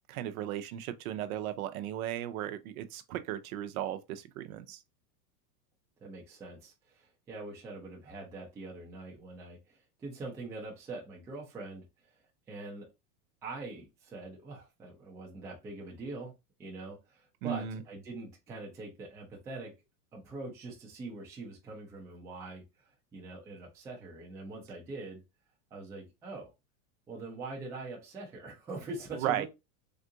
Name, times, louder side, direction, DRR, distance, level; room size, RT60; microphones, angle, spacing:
voice 1, 0.1-4.8 17.4-17.8 29.2-29.5, right 11 dB, 60° right, 0.6 m, -35 dB
voice 2, 6.0-12.2 12.5-12.9 13.4-16.3 16.6-19.7 20.1-25.2 25.7-26.5 27.1-29.5, right 3 dB, 5° right, 0.3 m, -43 dB
3.6 x 2.4 x 2.6 m
supercardioid pair, 135°, 48 cm